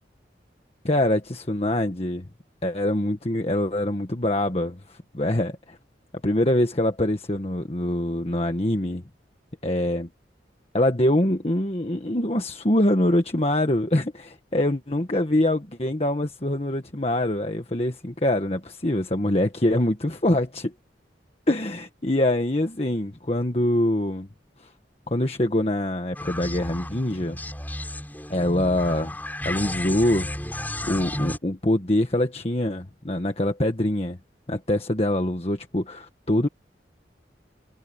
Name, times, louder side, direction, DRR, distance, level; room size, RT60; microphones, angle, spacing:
voice 1, 0.8-2.3 2.6-5.8 6.2-9.0 9.6-10.1 10.7-20.7 21.5-24.3 24.6-24.7 25.1-27.4 28.3-29.1 29.4-30.3 30.8-34.2 34.5-36.5, left 1 dB, 35° left, 1.5 m, -24 dB
sound 1, 26.1-31.4, left 1 dB, 10° left, 7.6 m, -33 dB
head